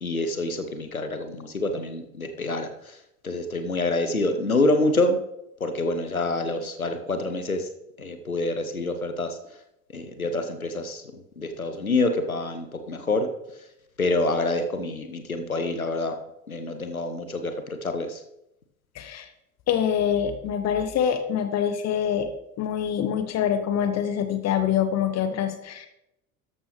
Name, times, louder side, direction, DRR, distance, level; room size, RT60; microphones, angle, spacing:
voice 1, 0.0-3.0 3.2-5.2 5.6-7.7 8.0-9.4 9.9-13.3 14.0-16.2 16.5-18.2, left 2 dB, 90° left, 8 dB, 0.9 m, -27 dB
voice 2, 19.0-19.3 19.7-22.3 22.6-25.9, left 9 dB, 40° left, 9 dB, 1.0 m, -25 dB
13.5 x 11.0 x 3.1 m, 0.85 s
figure-of-eight pair, 65°, 41 cm